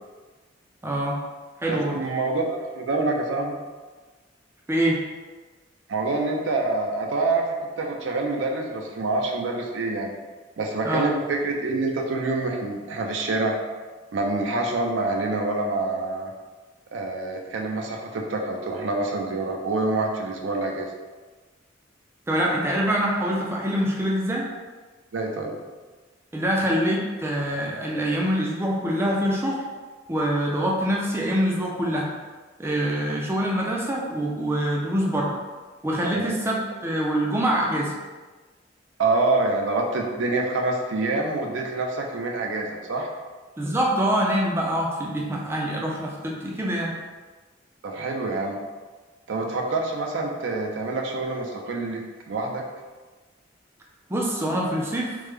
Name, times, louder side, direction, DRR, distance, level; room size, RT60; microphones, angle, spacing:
voice 1, 0.8-1.2 1.6-2.0 4.7-5.0 10.8-11.1 22.3-24.5 26.3-29.6 30.1-32.1 32.6-35.3 35.8-37.9 43.6-46.9 54.1-55.2, equal, 15° right, -3 dB, 0.4 m, -25 dB
voice 2, 1.7-3.6 5.9-10.1 10.6-13.6 14.1-16.3 16.9-20.9 25.1-25.6 36.1-36.3 39.0-43.1 47.8-48.6 49.3-52.6, right 2 dB, 75° right, 1 dB, 0.5 m, -26 dB
3.3 x 2.1 x 3.3 m, 1.3 s
head